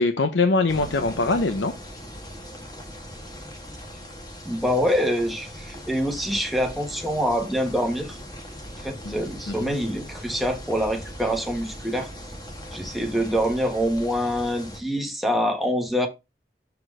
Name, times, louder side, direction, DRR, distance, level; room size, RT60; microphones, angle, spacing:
voice 1, 0.0-1.7 9.0-9.2 9.5-9.8, left 3 dB, 85° left, 0.8 m, -23 dB
sound 1, 0.7-14.8, equal, 20° left, 1.7 m, -39 dB
voice 2, 4.4-8.2 8.8-12.1 12.7-16.1, equal, ahead, 1.3 m, -25 dB
7.0 x 4.3 x 4.9 m
head